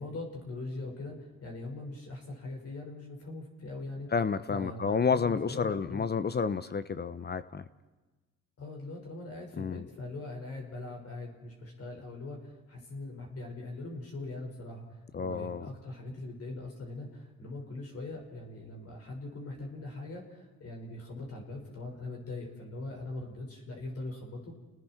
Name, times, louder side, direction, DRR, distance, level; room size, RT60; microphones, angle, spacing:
voice 1, 0.0-4.1 4.5-6.0 8.6-24.5, left 2 dB, 50° left, 0 dB, 5.5 m, -41 dB
voice 2, 4.1-7.6 9.6-9.8 15.1-15.7, left 5 dB, 35° left, 14 dB, 0.8 m, -30 dB
30.0 x 19.5 x 4.6 m, 1.2 s
cardioid pair, 90°, 30 cm